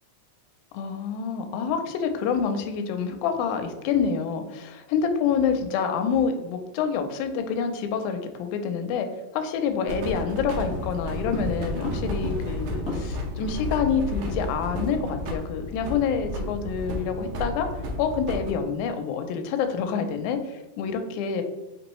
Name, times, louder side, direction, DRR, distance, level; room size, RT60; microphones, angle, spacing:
voice 1, 0.7-9.1 9.3-17.7 18.0-21.4, left 6 dB, 80° left, 6 dB, 1.8 m, -27 dB
sound 1, 9.9-18.5, equal, 75° right, 1.5 m, -32 dB
sound 2, 10.7-13.4 13.6-13.7 14.0-15.0 15.3-15.5 15.9-16.1, left 3 dB, 55° left, 1.0 m, -36 dB
5.2 x 3.0 x 3.0 m, 1.0 s
omnidirectional pair, 3.8 m